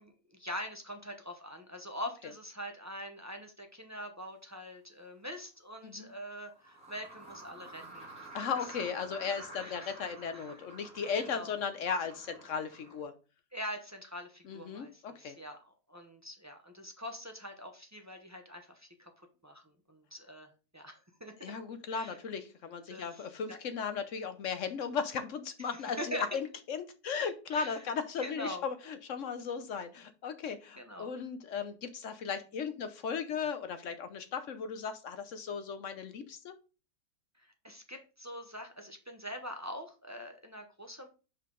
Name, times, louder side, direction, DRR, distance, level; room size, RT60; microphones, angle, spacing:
voice 1, 0.0-8.3 9.6-9.9 10.3-10.5 11.1-11.5 13.5-15.6 15.9-19.6 19.9-21.3 21.9-22.2 22.9-23.6 25.7-26.2 27.5-27.9 28.2-28.6 30.8-31.1 37.4-41.1, equal, 20° right, 4 dB, 0.5 m, -44 dB
sound 1, 4.7-4.8 6.3-13.0, right 2 dB, 5° right, 2.7 m, -50 dB
voice 2, 8.3-13.1 14.4-15.4 21.4-36.5, left 6 dB, 60° left, 10 dB, 1.0 m, -36 dB
5.6 x 5.5 x 3.8 m, 0.34 s
omnidirectional pair, 1.6 m